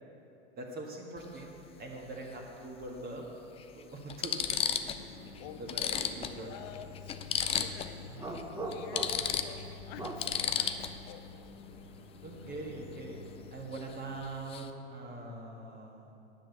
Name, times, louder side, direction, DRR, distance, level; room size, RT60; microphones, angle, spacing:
voice 1, 0.6-3.2 3.7-4.6 5.6-6.5 8.1-8.2 12.2-13.2 13.5-16.1, right 2 dB, 30° right, -1 dB, 1.7 m, -43 dB
sound 1, 1.2-1.4 2.8-2.9 3.6-3.7 4.1-5.0 5.4-5.5 5.7-8.0 8.3-8.4 8.7-11.1 13.7-13.9 14.2-14.7, left 8 dB, 20° left, 0.4 m, -33 dB
sound 2, 5.0-13.8, left 4 dB, 85° left, 1.3 m, -49 dB
voice 2, 5.4-6.2 6.4-11.6, left 9 dB, 55° left, 9 dB, 0.8 m, -49 dB
sound 3, 8.2-9.4 10.0-10.3, right 2 dB, 10° right, 0.9 m, -39 dB
10.0 x 6.2 x 6.9 m, 2.7 s
hypercardioid pair, 105°, 32 cm